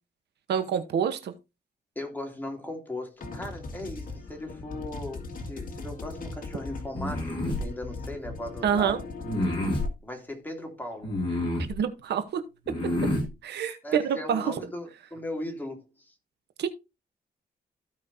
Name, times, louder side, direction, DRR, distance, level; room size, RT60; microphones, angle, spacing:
voice 1, 0.5-1.3 8.6-9.0 11.7-12.4 13.4-14.5 16.6-16.7, right 8 dB, 80° right, 1.1 m, -27 dB
voice 2, 1.9-9.0 10.0-11.2 13.8-16.1, left 1 dB, 10° left, 2.8 m, -38 dB
sound 1, 3.2-9.9, left 3 dB, 55° left, 2.0 m, -39 dB
sound 2, 6.9-7.6 9.2-9.9 11.0-11.7 12.7-13.3, left 1 dB, 30° left, 5.9 m, -28 dB
15.5 x 5.2 x 2.7 m
cardioid pair, 95°, 17 cm